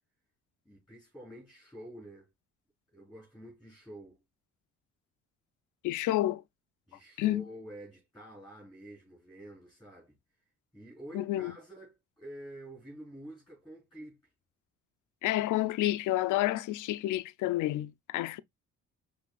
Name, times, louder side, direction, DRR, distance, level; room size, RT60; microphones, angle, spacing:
voice 1, 0.7-2.3 2.9-4.2 6.9-10.1 10.7-14.2, right 1 dB, ahead, 3.6 m, -48 dB
voice 2, 5.8-6.4 7.2-7.4 11.1-11.5 15.2-18.4, left 15 dB, 80° left, 0.5 m, -29 dB
6.0 x 3.3 x 2.2 m
cardioid pair, 90°, 30 cm